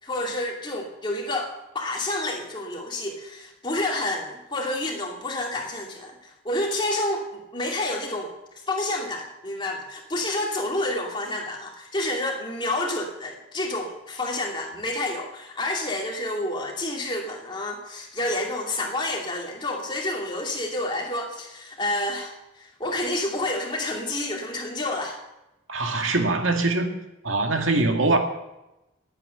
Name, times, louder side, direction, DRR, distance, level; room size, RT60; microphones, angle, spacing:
voice 1, 0.0-8.3 8.7-25.2, left 1 dB, 25° left, 0 dB, 2.7 m, -29 dB
voice 2, 25.7-27.0 27.2-28.2, right 2 dB, 90° right, 4 dB, 2.1 m, -22 dB
18.0 x 9.0 x 6.7 m, 0.94 s
head